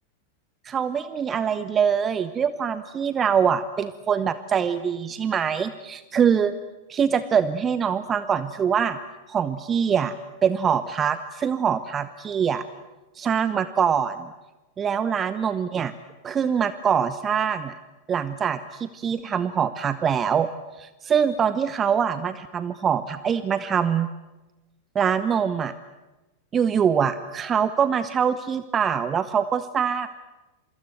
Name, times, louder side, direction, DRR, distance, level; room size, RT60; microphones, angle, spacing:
voice 1, 0.6-6.5 6.9-9.0 9.3-10.1 10.4-12.6 13.1-14.3 14.8-15.9 16.2-17.7 18.1-20.5 20.8-24.1 24.9-25.7 26.5-30.1, right 7 dB, 25° right, 14 dB, 0.9 m, -24 dB
28.0 x 25.0 x 7.9 m, 1.1 s
figure-of-eight pair, 90°, 0 cm